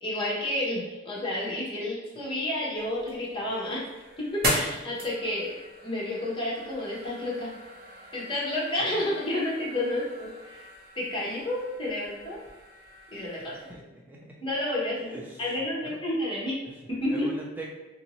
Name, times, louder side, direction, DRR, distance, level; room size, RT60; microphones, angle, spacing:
voice 1, 0.0-3.9 4.2-5.5 5.8-7.5 8.1-10.7 11.0-12.4 13.1-13.6 14.4-15.1 15.4-16.6 16.9-17.3, left 1 dB, 25° left, -5 dB, 0.8 m, -30 dB
sound 1, 2.8-13.7, right 1 dB, 50° right, 0.7 m, -38 dB
voice 2, 13.5-14.4 14.9-15.5 15.8-16.0 16.6-16.8 17.1-17.7, right 2 dB, 10° right, -3 dB, 0.3 m, -42 dB
3.0 x 2.6 x 2.9 m, 1.2 s
head